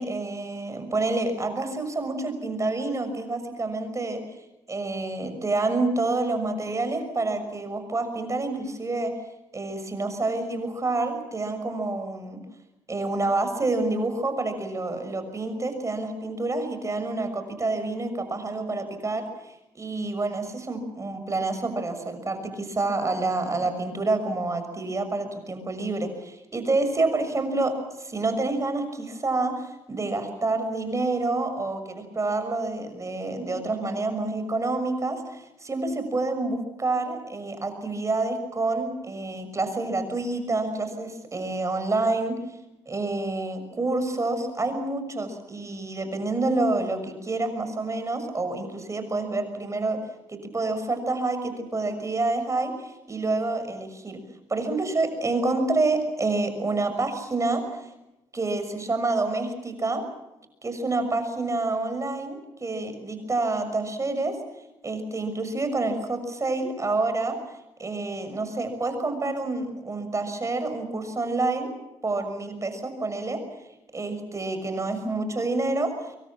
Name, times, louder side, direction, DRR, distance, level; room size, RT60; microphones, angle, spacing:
voice 1, 0.0-4.2 4.7-9.1 9.5-12.4 12.9-42.4 42.9-50.0 50.3-54.2 54.5-57.6 58.3-60.0 60.6-64.4 64.8-71.7 72.0-73.4 73.9-75.9, right 2 dB, 30° right, 8 dB, 6.3 m, -28 dB
26.5 x 23.0 x 7.4 m, 0.94 s
cardioid pair, 75°, 11 cm